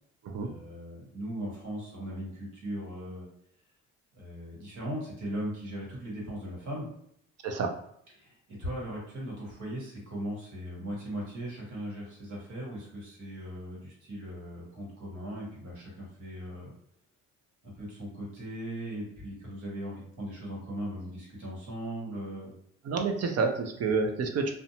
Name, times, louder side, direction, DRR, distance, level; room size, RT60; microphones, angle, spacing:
voice 1, 0.4-3.3 4.1-6.9 8.2-16.7 17.6-22.5, equal, 75° right, -3 dB, 1.3 m, -38 dB
voice 2, 22.9-24.5, right 4 dB, 55° right, 4 dB, 0.5 m, -28 dB
2.5 x 2.1 x 2.8 m, 0.71 s
cardioid pair, 90°, 30 cm